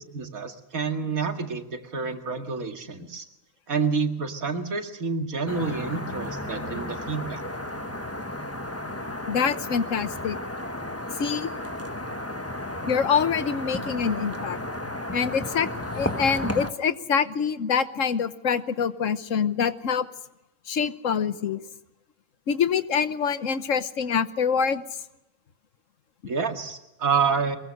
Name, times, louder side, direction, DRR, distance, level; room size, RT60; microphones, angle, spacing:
voice 1, 0.0-3.2 3.7-7.4 26.3-27.6, right 5 dB, 90° right, 5 dB, 2.4 m, -28 dB
sound 1, 5.5-16.7, left 1 dB, 10° left, 1.2 m, -33 dB
voice 2, 9.3-10.4 11.2-11.5 12.9-14.6 15.1-15.7 16.0-20.1 20.7-21.6 22.5-24.8, left 6 dB, 70° left, 13 dB, 1.4 m, -25 dB
23.0 x 22.0 x 6.5 m, 0.93 s
omnidirectional pair, 1.4 m